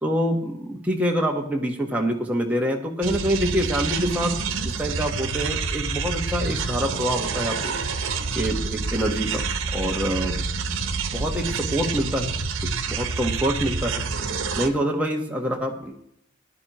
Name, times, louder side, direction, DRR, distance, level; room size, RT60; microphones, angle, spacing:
voice 1, 0.0-4.3 4.6-7.8 8.3-9.4 9.7-10.4 11.1-12.3 12.6-14.1 14.6-16.1, equal, 5° right, 0 dB, 1.2 m, -26 dB
sound 1, 3.0-14.7, right 4 dB, 90° right, 0.9 m, -28 dB
16.0 x 10.5 x 3.0 m, 0.74 s
head